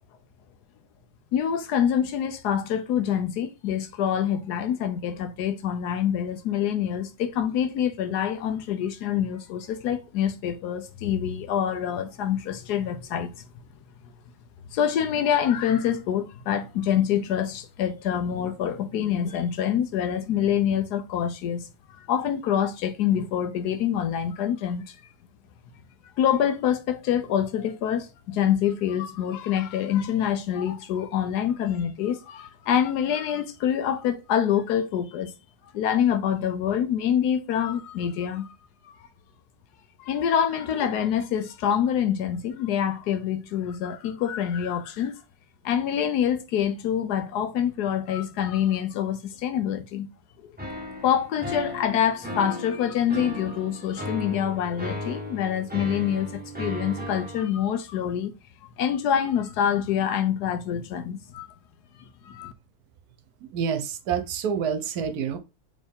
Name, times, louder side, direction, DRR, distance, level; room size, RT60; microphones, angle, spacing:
voice 1, 1.3-13.3 14.7-25.0 26.2-35.3 35.7-38.5 38.8-38.9 40.0-45.1 45.6-50.1 50.4-50.5 51.0-58.3 58.8-61.5 62.2-62.5, left 9 dB, 80° left, 1.2 m, -26 dB
sound 1, 50.6-57.4, left 1 dB, 5° right, 1.1 m, -35 dB
voice 2, 63.5-65.4, right 7 dB, 75° right, 1.2 m, -27 dB
4.4 x 3.5 x 3.5 m
omnidirectional pair, 1.7 m